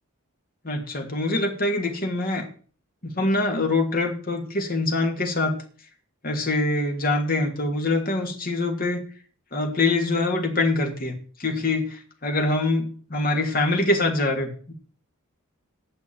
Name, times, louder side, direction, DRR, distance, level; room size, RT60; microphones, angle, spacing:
voice 1, 0.6-2.5 3.0-5.6 6.2-9.0 9.5-11.1 11.4-14.7, left 2 dB, 40° left, 2 dB, 2.5 m, -24 dB
9.8 x 6.9 x 9.0 m, 0.43 s
head